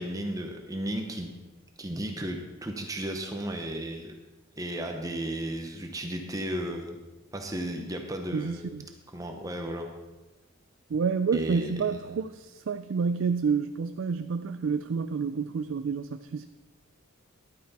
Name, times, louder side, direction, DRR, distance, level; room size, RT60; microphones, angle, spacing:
voice 1, 0.0-1.4 1.8-4.1 4.6-7.0 7.3-9.9 11.3-12.2, right 1 dB, 15° right, 3 dB, 0.8 m, -34 dB
voice 2, 8.3-8.8 10.9-16.4, right 5 dB, 65° right, 10 dB, 0.4 m, -29 dB
12.0 x 9.2 x 4.2 m, 1.1 s
head